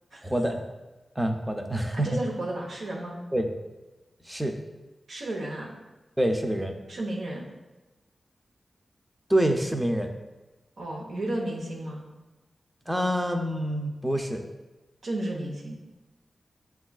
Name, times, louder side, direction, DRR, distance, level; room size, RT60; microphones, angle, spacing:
voice 1, 0.2-0.7 1.2-2.2 3.3-3.5 4.2-4.6 6.2-6.7 9.3-10.1 12.9-14.4, right 1 dB, 10° right, 4 dB, 0.4 m, -26 dB
voice 2, 1.9-3.2 5.1-5.7 6.9-7.5 10.8-12.0 15.0-15.8, right 1 dB, 85° right, -1 dB, 0.8 m, -33 dB
6.9 x 2.3 x 2.3 m, 1.1 s
cardioid pair, 70°, 0 cm